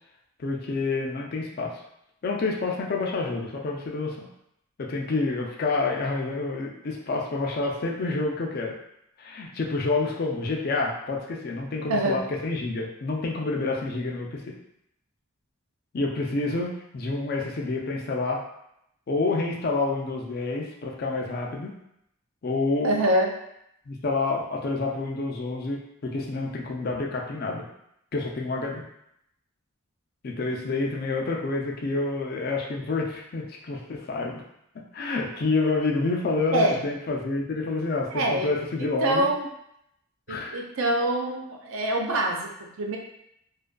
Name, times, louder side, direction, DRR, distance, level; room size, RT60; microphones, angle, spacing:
voice 1, 0.4-1.8 2.2-4.3 4.8-8.8 9.2-14.5 15.9-18.4 19.1-21.7 22.4-22.9 23.9-27.6 28.1-28.8 30.2-34.4 34.9-39.3 40.3-40.6, left 3 dB, 45° left, 0 dB, 0.3 m, -28 dB
voice 2, 22.8-23.3 36.5-36.8 38.1-38.5 38.8-39.5 40.3-43.0, right 1 dB, 70° right, 1 dB, 0.4 m, -25 dB
2.4 x 2.4 x 2.2 m, 0.78 s
head